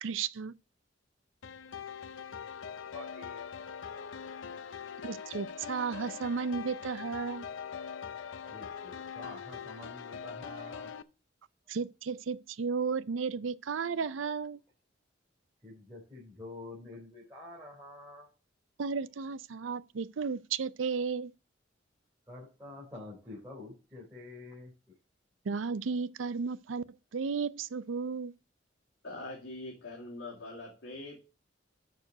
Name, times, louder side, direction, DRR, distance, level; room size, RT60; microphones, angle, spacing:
voice 1, 0.0-0.5 5.0-7.5 11.7-14.6 18.8-21.3 25.4-26.8 27.1-28.3, right 5 dB, 90° right, 0.5 m, -34 dB
sound 1, 1.4-11.0, left 7 dB, 85° left, 0.6 m, -42 dB
voice 2, 2.9-3.4 3.8-3.9 8.5-10.9 15.6-18.3 22.3-24.7, left 2 dB, 10° right, 4.0 m, -48 dB
voice 3, 29.0-31.2, left 2 dB, 65° left, 2.5 m, -43 dB
6.7 x 6.4 x 6.6 m
head